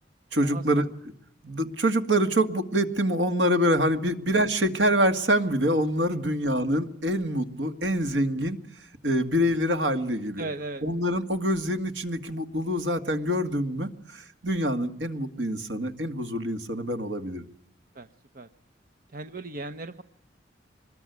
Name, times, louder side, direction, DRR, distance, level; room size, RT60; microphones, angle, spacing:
voice 1, 0.3-0.8 1.4-8.6 9.0-10.5 10.8-17.5, equal, 70° right, 7 dB, 2.1 m, -25 dB
voice 2, 10.4-10.8 17.9-18.1 18.3-18.5 19.1-20.0, right 2 dB, 50° right, 8 dB, 1.0 m, -36 dB
25.0 x 21.5 x 9.5 m, 0.71 s
head